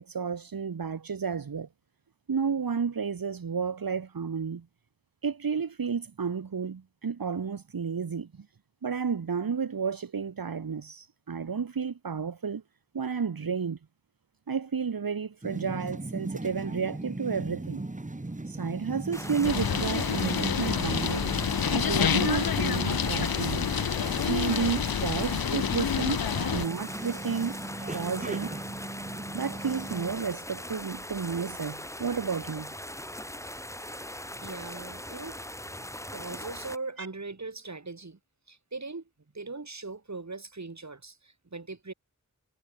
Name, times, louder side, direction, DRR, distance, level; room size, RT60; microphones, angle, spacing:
voice 1, 0.0-1.7 2.3-4.7 5.2-8.5 8.8-12.6 12.9-13.8 14.5-17.8 18.5-21.3 21.7-23.7 24.3-26.2 26.5-27.6 27.9-28.6 29.3-32.7 37.0-37.1, right 6 dB, 75° right, 1.1 m, -31 dB
sound 1, 15.4-30.1, right 2 dB, 20° right, 1.3 m, -38 dB
sound 2, 19.1-36.8, left 1 dB, 10° left, 1.5 m, -40 dB
sound 3, 19.4-26.7, left 8 dB, 85° left, 0.7 m, -28 dB
voice 2, 34.4-35.4 36.1-38.2 38.5-39.1 39.3-41.9, right 3 dB, 50° right, 2.2 m, -40 dB
wide cardioid pair, 45°, 35 cm